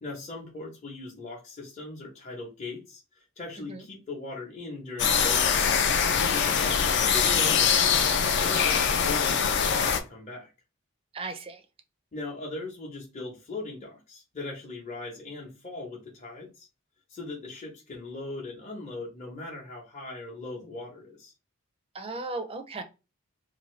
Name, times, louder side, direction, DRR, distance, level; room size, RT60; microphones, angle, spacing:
voice 1, 0.0-5.8 6.1-8.1 8.4-10.5 12.1-16.7 17.1-21.3, left 2 dB, 30° left, -3 dB, 0.8 m, -39 dB
sound 1, 5.0-10.0, left 6 dB, 55° left, 0.4 m, -23 dB
voice 2, 11.1-11.6 21.9-22.8, right 3 dB, 25° right, 8 dB, 0.4 m, -36 dB
2.7 x 2.6 x 3.1 m, 0.29 s
head